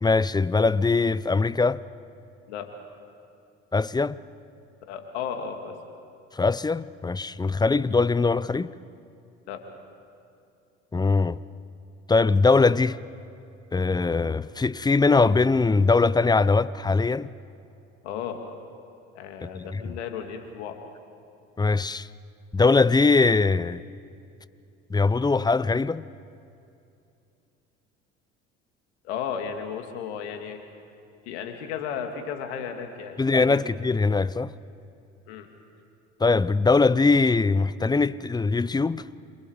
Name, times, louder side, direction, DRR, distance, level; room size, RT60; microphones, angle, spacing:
voice 1, 0.0-1.8 3.7-4.2 6.3-8.7 10.9-11.4 12.1-13.0 13.7-17.3 19.4-19.9 21.6-22.1 22.5-23.8 24.9-26.1 33.2-34.5 36.2-39.2, left 3 dB, 10° left, 0.6 m, -21 dB
voice 2, 4.9-5.7 9.5-9.6 18.0-18.4 19.1-20.8 29.0-30.6 31.3-33.6 35.3-35.5, left 7 dB, 75° left, 2.6 m, -34 dB
28.5 x 27.0 x 5.0 m
hypercardioid pair, 65°, 34 cm